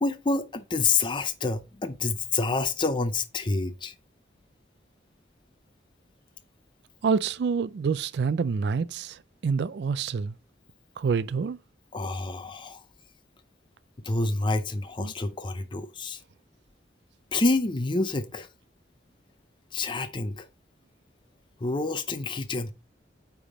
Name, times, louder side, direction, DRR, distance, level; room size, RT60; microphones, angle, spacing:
voice 1, 0.0-3.9 11.9-12.8 14.0-16.2 17.3-18.5 19.7-20.4 21.6-22.7, left 3 dB, 25° left, 0.5 m, -28 dB
voice 2, 7.0-9.2 9.4-10.3 11.0-11.6 15.0-15.1, right 5 dB, 65° right, 0.3 m, -27 dB
8.8 x 3.5 x 4.9 m
head